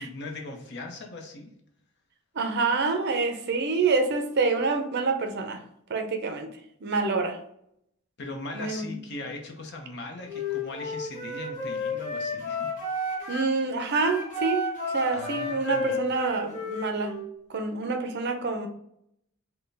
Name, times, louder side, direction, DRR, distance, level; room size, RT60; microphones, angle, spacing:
voice 1, 0.0-1.5 8.2-12.7 15.1-16.0, left 2 dB, 55° left, 3 dB, 0.7 m, -39 dB
voice 2, 2.3-5.6 5.9-6.5 6.8-7.4 8.5-8.9 13.3-14.7 14.9-17.2 17.5-18.7, right 4 dB, 50° right, 5 dB, 0.5 m, -27 dB
Wind instrument woodwind instrument, 10.2-13.5 13.9-17.3, left 2 dB, 35° left, 1.1 m, -32 dB
4.3 x 2.2 x 3.3 m, 0.73 s
head